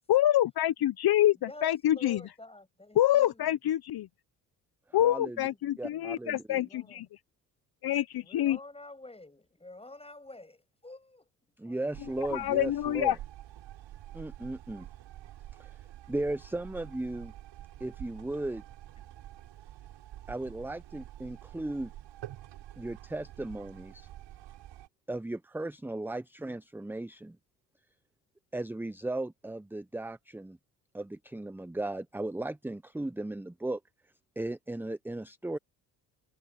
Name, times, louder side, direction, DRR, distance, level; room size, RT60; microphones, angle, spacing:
voice 1, 0.1-2.2 2.9-4.1 4.9-7.0 7.8-8.6 12.3-13.2, left 13 dB, 55° left, 1.0 m, -26 dB
voice 2, 1.4-3.6 5.5-5.6 5.9-7.1 8.2-11.3 11.6-11.8 12.1-12.2, left 2 dB, 15° left, 6.8 m, -49 dB
voice 3, 5.0-5.5 5.8-6.6 11.6-13.2 14.1-14.9 15.6-15.8 16.1-17.3 17.8-18.6 20.3-21.9 22.8-24.1 25.1-27.4 28.5-30.6 30.9-33.8 34.4-35.6, right 2 dB, 5° right, 0.8 m, -36 dB
sound 1, 11.9-24.9, right 13 dB, 70° right, 7.3 m, -48 dB
hypercardioid pair, 60°, 46 cm